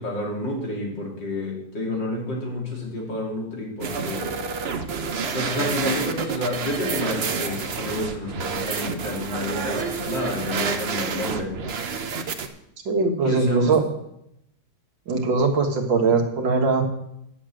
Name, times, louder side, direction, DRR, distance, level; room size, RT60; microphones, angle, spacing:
voice 1, 0.0-4.4 5.3-11.6 13.2-13.8, left 1 dB, 75° left, -1 dB, 3.6 m, -29 dB
sound 1, 3.8-12.5, right 5 dB, 45° right, 0.9 m, -29 dB
voice 2, 12.9-13.9 15.1-16.8, right 4 dB, 80° right, 3 dB, 2.3 m, -21 dB
10.5 x 7.2 x 7.7 m, 0.77 s
omnidirectional pair, 2.0 m